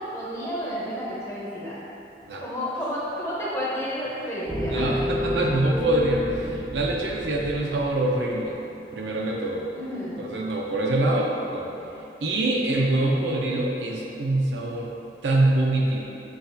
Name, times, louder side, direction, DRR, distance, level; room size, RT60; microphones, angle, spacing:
voice 1, 0.1-1.7 2.4-4.9 9.7-10.2, equal, 15° left, -7 dB, 0.7 m, -31 dB
sound 1, 4.5-12.0, left 1 dB, 20° right, 0.4 m, -34 dB
voice 2, 4.6-8.6 8.9-9.6 10.2-11.7 12.2-14.9 15.2-16.0, right 2 dB, 75° right, -1 dB, 0.5 m, -24 dB
6.2 x 2.3 x 2.6 m, 2.8 s
head